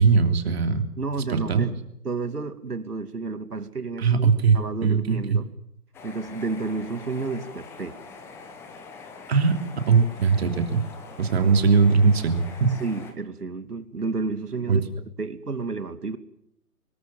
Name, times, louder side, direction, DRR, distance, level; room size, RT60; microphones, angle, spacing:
voice 1, 0.0-0.9 1.3-1.6 4.0-5.4 9.3-10.8 11.2-12.8 14.7-14.8, right 5 dB, 40° right, 6 dB, 3.3 m, -20 dB
voice 2, 1.0-1.8 2.0-5.5 6.0-8.0 12.8-14.9 15.2-16.2, right 4 dB, 70° right, 10 dB, 2.7 m, -31 dB
sound 1, 5.9-13.1, left 4 dB, 5° left, 1.1 m, -44 dB
25.5 x 20.0 x 7.6 m, 0.76 s
figure-of-eight pair, 140°, 48 cm